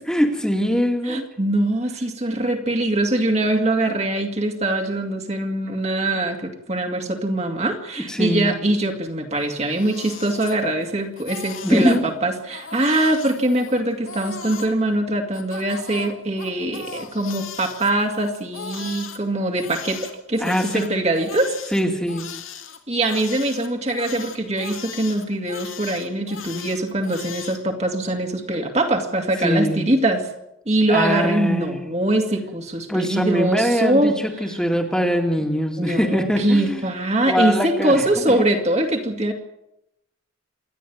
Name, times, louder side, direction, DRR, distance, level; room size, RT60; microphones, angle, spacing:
voice 1, 0.1-1.3 8.1-8.6 11.6-12.0 20.4-20.9 21.7-22.3 29.4-29.8 30.9-31.9 32.9-36.9 37.2-38.4, equal, 5° left, 2 dB, 2.2 m, -22 dB
voice 2, 1.1-21.5 22.9-30.2 30.7-34.2 35.8-39.3, right 1 dB, 30° right, 3 dB, 2.3 m, -22 dB
Crying sobbing, 9.4-10.9 11.2-12.0 12.5-14.7 15.3-19.2 19.6-27.6, left 6 dB, 75° left, 2.8 m, -37 dB
27.5 x 11.0 x 9.5 m, 0.86 s
head